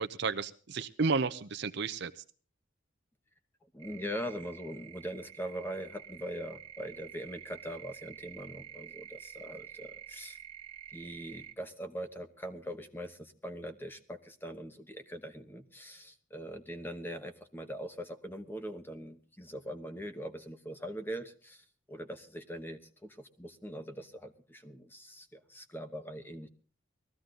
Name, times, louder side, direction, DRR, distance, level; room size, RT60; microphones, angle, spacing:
voice 1, 0.0-2.1, right 4 dB, 60° right, 10 dB, 0.8 m, -32 dB
voice 2, 3.6-10.4 10.9-26.5, equal, 10° left, 8 dB, 1.0 m, -42 dB
sound 1, 3.8-11.5, right 9 dB, 30° right, 1.3 m, -49 dB
19.5 x 14.0 x 3.9 m, 0.38 s
head